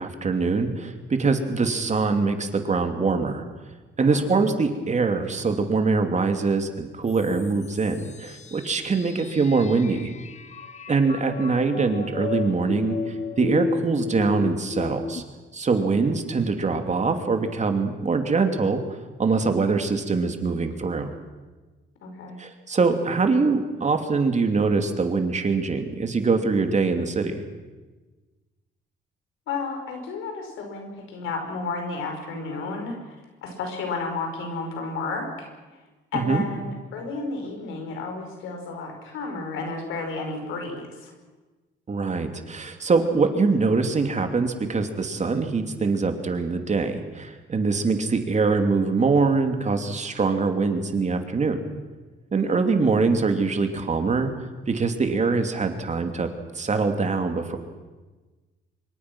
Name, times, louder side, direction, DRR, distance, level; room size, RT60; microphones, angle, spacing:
voice 1, 0.0-3.4 4.0-10.1 10.9-15.2 15.5-18.8 19.2-21.1 22.4-27.4 36.1-36.4 41.9-51.6 52.3-54.3 54.7-56.3 56.5-57.6, right 4 dB, 35° right, 6 dB, 2.8 m, -23 dB
sound 1, 7.1-15.2, left 5 dB, 35° left, 1.1 m, -34 dB
voice 2, 22.0-22.4 29.5-33.0 33.4-35.5 36.1-41.1 52.5-52.6, left 3 dB, 85° left, 4 dB, 5.3 m, -32 dB
25.0 x 23.0 x 6.2 m, 1.2 s
cardioid pair, 90°, 20 cm